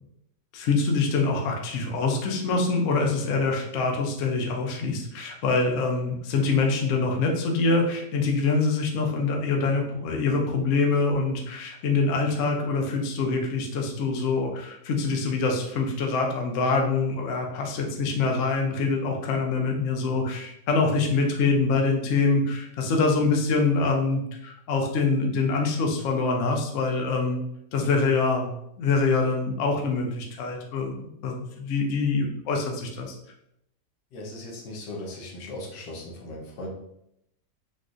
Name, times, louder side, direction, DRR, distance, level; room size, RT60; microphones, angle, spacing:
voice 1, 0.5-27.4 27.7-28.5 28.8-30.9 31.2-33.1, left 3 dB, 65° left, 1 dB, 0.7 m, -25 dB
voice 2, 34.1-36.7, left 1 dB, 85° left, -1 dB, 1.4 m, -38 dB
3.9 x 2.4 x 2.4 m, 0.78 s
omnidirectional pair, 1.9 m